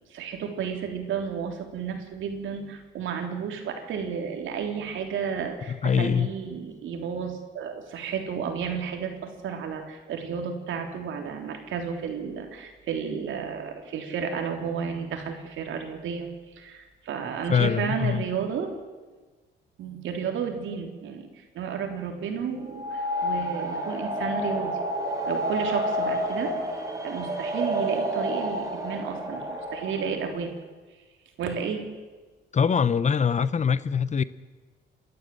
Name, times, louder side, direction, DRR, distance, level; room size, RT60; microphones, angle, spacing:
voice 1, 0.1-18.7 19.8-24.7 25.3-30.5 31.4-31.8, right 6 dB, 75° right, 3.5 m, -32 dB
voice 2, 5.7-6.3 17.5-18.2 32.5-34.2, left 7 dB, 35° left, 0.8 m, -23 dB
sound 1, 22.7-30.3, equal, 15° right, 4.3 m, -29 dB
29.0 x 12.5 x 7.8 m
cardioid pair, 90°, 20 cm